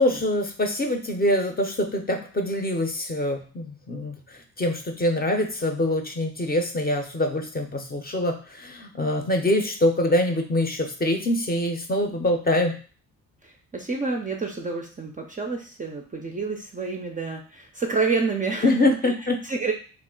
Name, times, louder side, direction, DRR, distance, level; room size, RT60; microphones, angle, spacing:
voice 1, 0.0-12.8 18.6-19.4, left 1 dB, 25° left, 3 dB, 0.6 m, -24 dB
voice 2, 13.4-19.1 19.4-19.7, right 4 dB, 20° right, 2 dB, 0.4 m, -29 dB
2.4 x 2.1 x 3.7 m, 0.39 s
supercardioid pair, 60°, 39 cm